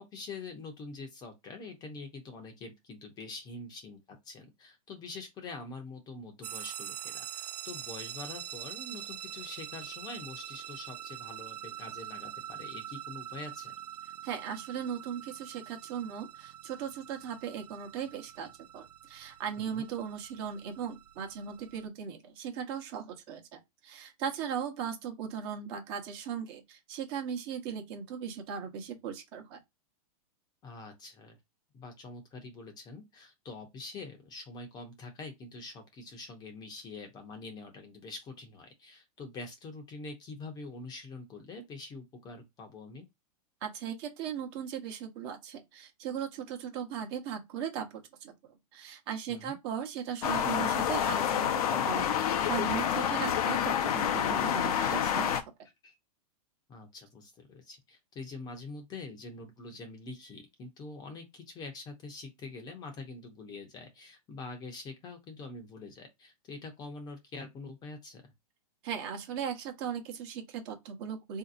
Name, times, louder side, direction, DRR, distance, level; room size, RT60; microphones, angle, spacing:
voice 1, 0.0-13.7 19.6-19.9 30.6-31.4 31.7-43.1 49.3-49.6 55.8-56.0 56.7-68.2, left 3 dB, 20° left, 0.7 m, -45 dB
sound 1, 6.4-21.9, right 11 dB, 90° right, 0.4 m, -44 dB
voice 2, 14.2-29.6 43.6-48.3 48.7-55.4 68.8-71.4, right 8 dB, 40° right, 0.9 m, -38 dB
sound 2, 50.2-55.4, left 9 dB, 65° left, 0.6 m, -28 dB
3.8 x 2.7 x 2.5 m
hypercardioid pair, 150°, 20 cm